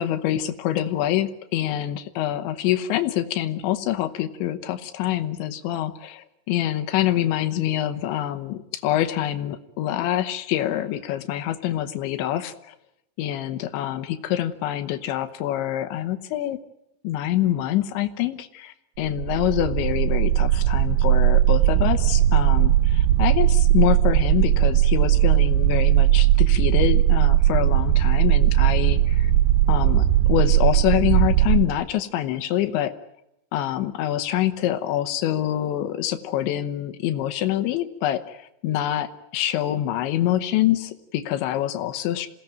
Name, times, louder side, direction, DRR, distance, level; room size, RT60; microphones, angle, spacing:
voice 1, 0.0-12.7 13.2-16.6 17.0-29.3 29.7-32.9 33.5-42.3, left 12 dB, 80° left, 10 dB, 3.4 m, -25 dB
sound 1, 19.1-31.6, right 13 dB, 75° right, 2.9 m, -18 dB
27.5 x 17.5 x 9.0 m, 0.84 s
omnidirectional pair, 5.3 m